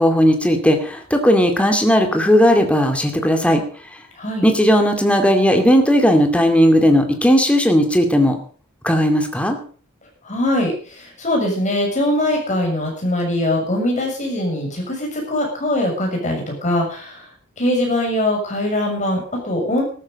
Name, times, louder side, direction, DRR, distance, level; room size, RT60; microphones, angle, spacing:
voice 1, 0.0-3.6 4.4-8.4 8.8-9.6, equal, 5° left, 5 dB, 2.4 m, -16 dB
voice 2, 10.2-17.2 17.6-19.8, left 1 dB, 35° left, 1 dB, 6.7 m, -22 dB
14.0 x 13.0 x 5.3 m, 0.43 s
head